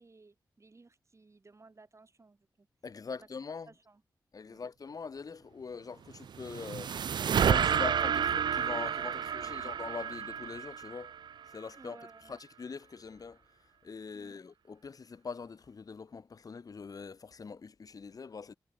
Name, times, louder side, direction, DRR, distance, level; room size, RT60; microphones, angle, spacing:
voice 1, 0.0-2.7 3.1-3.3 3.7-4.0 4.5-4.7 9.3-9.7 11.8-12.4 14.1-14.5, right 3 dB, 40° right, 4.3 m, -58 dB
voice 2, 2.8-3.7 4.3-7.2 7.4-11.1 11.5-12.0 12.3-13.4 13.8-18.6, left 5 dB, 55° left, 1.0 m, -43 dB
sound 1, 6.1-11.5, right 8 dB, 75° right, 0.5 m, -30 dB
cardioid pair, 60°, 8 cm